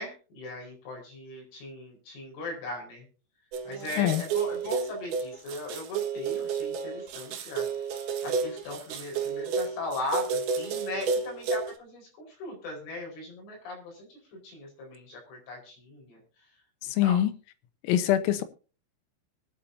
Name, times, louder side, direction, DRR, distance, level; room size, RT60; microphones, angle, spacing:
voice 1, 0.0-3.1 3.7-7.9 8.2-12.1 12.4-16.2 17.0-17.2 18.2-18.4, left 2 dB, 70° left, -1 dB, 7.0 m, -38 dB
sound 1, 3.5-11.7, right 5 dB, 60° right, 2.9 m, -31 dB
voice 2, 16.9-17.3 17.8-18.4, left 12 dB, 85° left, 12 dB, 3.7 m, -24 dB
22.0 x 8.8 x 2.7 m, 0.36 s
omnidirectional pair, 5.9 m